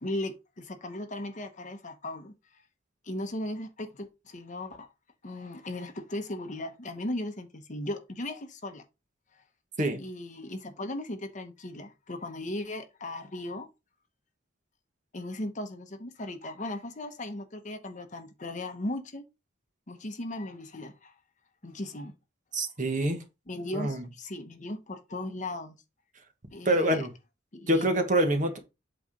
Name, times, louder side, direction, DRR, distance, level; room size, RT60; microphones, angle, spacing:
voice 1, 0.0-2.6 3.0-4.9 5.2-8.8 10.0-13.7 15.1-19.2 19.9-21.1 21.6-22.1 23.5-25.8 26.5-27.1 27.5-27.9, left 1 dB, 40° left, 1.0 m, -37 dB
voice 2, 22.5-23.2 23.7-24.0 26.6-27.1 27.7-28.6, right 1 dB, 40° right, 1.4 m, -26 dB
8.2 x 3.2 x 5.1 m
head